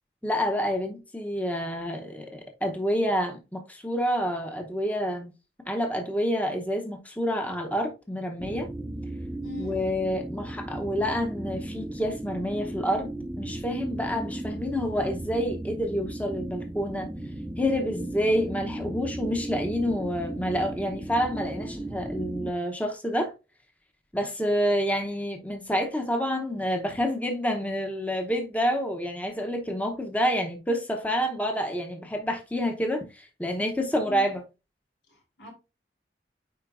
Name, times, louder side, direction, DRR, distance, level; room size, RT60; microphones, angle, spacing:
voice 1, 0.2-5.3 5.7-8.7 9.6-13.1 13.4-17.1 17.6-23.3 24.1-34.4, equal, 10° left, 0.8 m, -28 dB
sound 1, 8.4-22.5, right 1 dB, 10° right, 0.4 m, -36 dB
voice 2, 9.4-9.8 34.0-34.3 35.1-35.5, left 4 dB, 85° left, 3.8 m, -41 dB
9.5 x 4.3 x 2.5 m
head